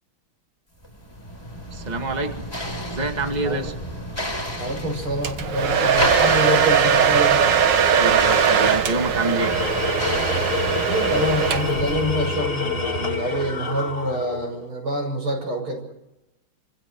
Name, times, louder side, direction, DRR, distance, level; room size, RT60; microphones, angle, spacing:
sound 1, 0.8-12.3, equal, 10° left, 5.3 m, -31 dB
voice 1, 1.7-2.4 2.9-3.7 7.8-9.5, right 3 dB, 20° right, 4 dB, 2.2 m, -26 dB
voice 2, 4.6-7.4 10.9-15.9, right 1 dB, 80° right, 4 dB, 6.9 m, -26 dB
Domestic sounds home sounds, 5.2-11.9, right 7 dB, 60° right, 1.9 m, -20 dB
Tools, 9.2-14.6, left 4 dB, 25° left, 2.0 m, -27 dB
29.0 x 26.0 x 4.8 m, 0.92 s
omnidirectional pair, 2.3 m